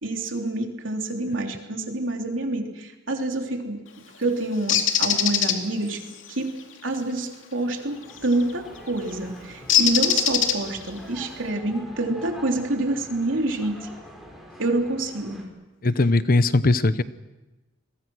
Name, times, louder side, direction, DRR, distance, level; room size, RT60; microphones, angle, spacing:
voice 1, 0.0-3.8 4.2-6.0 6.3-6.5 6.8-13.9 14.6-15.4, right 2 dB, 80° right, 3 dB, 3.3 m, -27 dB
Bird, 4.7-5.6 8.2-8.4 9.7-10.9, left 9 dB, 85° left, 2.5 m, -21 dB
sound 1, 7.7-15.4, equal, ahead, 5.4 m, -45 dB
voice 2, 15.8-17.0, left 2 dB, 50° left, 15 dB, 0.9 m, -19 dB
29.5 x 22.0 x 6.3 m, 1.1 s
head